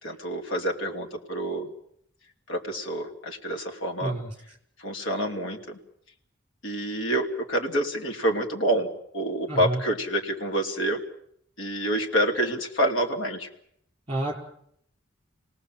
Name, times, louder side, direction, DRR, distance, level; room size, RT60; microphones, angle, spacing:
voice 1, 0.0-1.7 2.5-4.1 4.8-5.8 6.6-8.9 9.1-11.0 11.6-13.5, right 1 dB, 75° left, 3 dB, 2.9 m, -27 dB
voice 2, 4.0-4.3 9.5-9.8 14.1-14.3, right 1 dB, 25° right, 2 dB, 5.3 m, -28 dB
28.0 x 18.5 x 7.7 m, 0.72 s
head